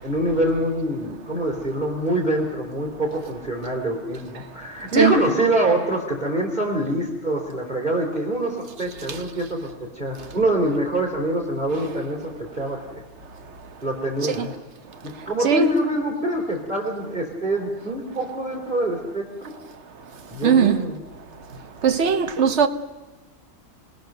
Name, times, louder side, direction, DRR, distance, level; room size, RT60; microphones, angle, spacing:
voice 1, 0.0-13.0 13.8-14.5 15.0-19.5 20.3-21.0, right 1 dB, 30° right, 3.4 m, -25 dB
voice 2, 20.4-20.8 21.8-22.7, right 7 dB, 50° right, 1.4 m, -18 dB
29.0 x 20.0 x 6.6 m
omnidirectional pair, 1.6 m